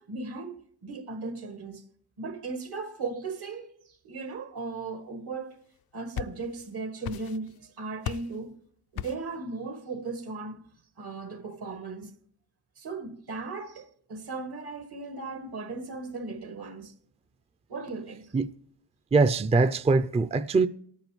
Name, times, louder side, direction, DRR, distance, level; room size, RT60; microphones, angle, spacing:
voice 1, 0.0-1.9 2.2-5.5 5.9-8.6 8.9-10.6 11.0-12.1 12.8-16.9 17.7-18.3, right 3 dB, 75° right, 1.6 m, -37 dB
sound 1, 5.8-6.7 7.0-7.6 8.0-8.4 9.0-9.4, left 10 dB, 65° left, 0.5 m, -37 dB
voice 2, 19.1-20.7, right 3 dB, 15° right, 0.4 m, -22 dB
27.0 x 9.3 x 3.2 m
cardioid pair, 55°, 39 cm